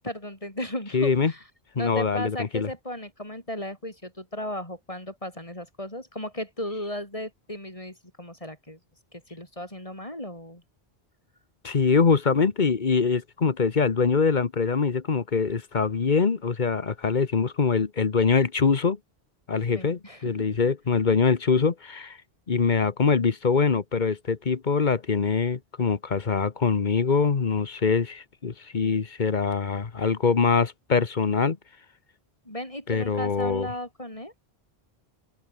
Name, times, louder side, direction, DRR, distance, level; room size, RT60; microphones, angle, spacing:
voice 1, 0.0-1.4 1.8-8.8 9.1-10.6 19.7-20.5 32.5-34.3, left 1 dB, 35° left, 7.0 m, -35 dB
voice 2, 0.9-1.3 1.7-2.7 11.6-19.0 19.5-22.2 22.5-31.6 32.9-33.7, left 5 dB, 50° left, 1.3 m, -23 dB
open air
omnidirectional pair, 1.0 m